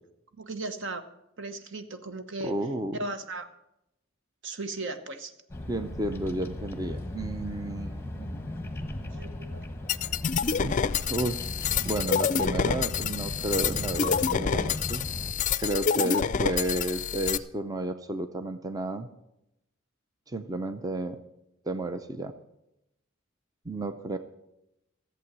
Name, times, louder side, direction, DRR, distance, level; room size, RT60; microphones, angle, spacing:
voice 1, 0.4-1.0 1.4-2.6 2.9-3.5 4.4-5.3 9.1-9.6, right 2 dB, 65° right, 9 dB, 1.1 m, -36 dB
voice 2, 2.4-3.0 5.7-8.4 10.6-11.5 11.8-15.0 15.6-19.1 20.3-21.2 21.6-22.3 23.7-24.2, right 1 dB, 20° right, 9 dB, 0.5 m, -32 dB
Bird vocalization bird call bird song, 5.5-15.3, left 1 dB, 10° left, 1.1 m, -37 dB
sound 1, 9.9-17.4, left 7 dB, 40° left, 0.4 m, -28 dB
14.5 x 7.9 x 7.4 m, 0.87 s
head